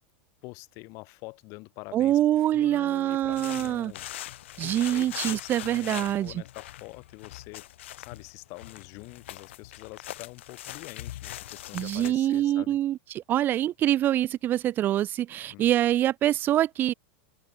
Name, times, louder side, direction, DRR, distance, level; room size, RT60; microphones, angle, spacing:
voice 1, 0.4-4.1 4.6-7.7 8.0-12.8 15.5-15.7, left 27 dB, 50° left, 5.2 m, -45 dB
voice 2, 1.9-3.9 4.6-6.3 11.7-16.9, right 12 dB, 30° right, 1.1 m, -25 dB
sound 1, 3.2-12.1, left 14 dB, 80° left, 2.4 m, -41 dB
supercardioid pair, 140°, 6 cm